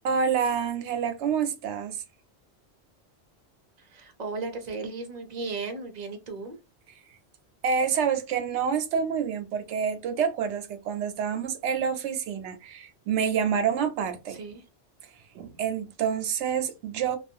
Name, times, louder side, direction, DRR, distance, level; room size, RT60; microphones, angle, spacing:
voice 1, 0.0-2.0 7.6-14.4 15.3-17.2, right 7 dB, 85° right, 0.9 m, -27 dB
voice 2, 3.8-6.6 14.3-14.6, right 3 dB, 50° right, 0.6 m, -36 dB
2.4 x 2.3 x 2.6 m
omnidirectional pair, 1.1 m